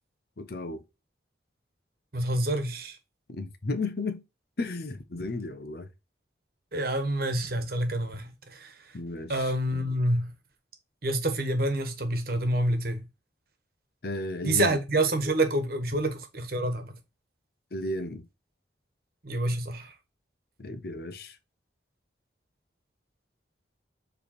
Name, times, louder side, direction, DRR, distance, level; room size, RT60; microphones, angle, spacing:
voice 1, 0.4-0.8 3.4-4.2 4.6-5.9 8.9-9.5 14.0-14.7 17.7-18.2 20.6-21.4, left 2 dB, 55° left, 0.8 m, -33 dB
voice 2, 2.1-3.0 6.7-9.0 9.3-10.3 11.0-13.1 14.4-17.0 19.2-20.0, right 1 dB, 55° right, 1.3 m, -28 dB
7.5 x 3.3 x 4.3 m
head